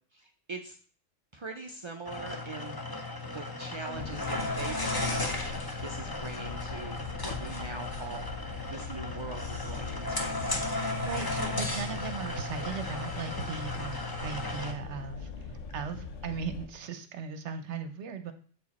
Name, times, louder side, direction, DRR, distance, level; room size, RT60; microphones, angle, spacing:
voice 1, 0.1-0.8 1.3-5.5 5.8-8.3 8.7-10.3, right 3 dB, 50° right, 3 dB, 0.3 m, -42 dB
sound 1, 2.0-14.7, left 2 dB, 25° left, 0.6 m, -35 dB
sound 2, 3.9-16.7, left 4 dB, 70° left, 1.2 m, -41 dB
voice 2, 11.0-15.3 15.7-18.3, right 6 dB, 65° right, 9 dB, 0.9 m, -37 dB
6.8 x 4.9 x 4.1 m, 0.44 s
omnidirectional pair, 1.3 m